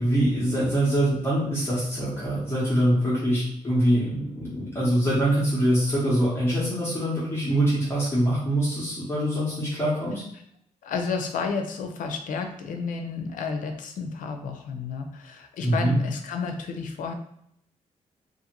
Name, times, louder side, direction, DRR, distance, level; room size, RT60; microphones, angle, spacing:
voice 1, 0.0-10.2 15.6-16.0, right 1 dB, 20° left, -9 dB, 0.9 m, -24 dB
voice 2, 10.8-17.1, left 5 dB, 80° left, 5 dB, 0.4 m, -31 dB
2.5 x 2.5 x 2.9 m, 0.72 s
cardioid pair, 120°, 13 cm